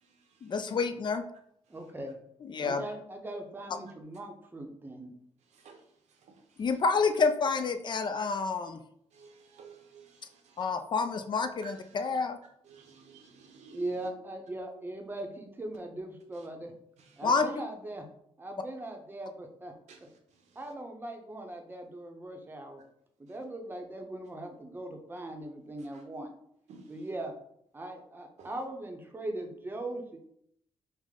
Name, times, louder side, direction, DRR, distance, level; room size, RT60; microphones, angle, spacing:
voice 1, 0.4-1.2 2.4-2.8 6.6-8.8 10.6-12.4 17.2-17.5, left 4 dB, 40° left, 8 dB, 0.4 m, -28 dB
voice 2, 1.7-2.2 2.6-5.1 13.7-16.7 17.2-18.1 18.4-19.7 20.6-22.8 23.2-26.3 26.9-27.3 27.7-30.2, right 1 dB, 20° right, 3 dB, 0.7 m, -40 dB
voice 3, 9.1-10.1 10.5-10.7 11.6-11.7 12.7-13.8 19.9-20.0 26.7-26.8 28.4-28.5, right 5 dB, 85° right, 4 dB, 0.8 m, -52 dB
5.0 x 2.1 x 3.6 m, 0.72 s
cardioid pair, 105°, 11 cm